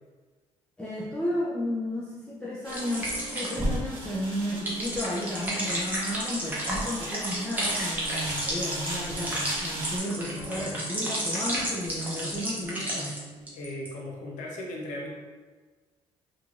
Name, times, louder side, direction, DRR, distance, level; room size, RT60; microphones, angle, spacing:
voice 1, 0.8-13.2, equal, 10° left, -8 dB, 0.4 m, -33 dB
sound 1, 2.6-10.0, right 1 dB, 40° right, 1.0 m, -39 dB
sound 2, 2.7-13.2 13.5-13.9, right 1 dB, 15° right, 0.8 m, -32 dB
voice 2, 13.3-15.1, left 1 dB, 80° left, -1 dB, 0.6 m, -38 dB
3.0 x 2.5 x 2.4 m, 1.4 s
cardioid pair, 115°, 13 cm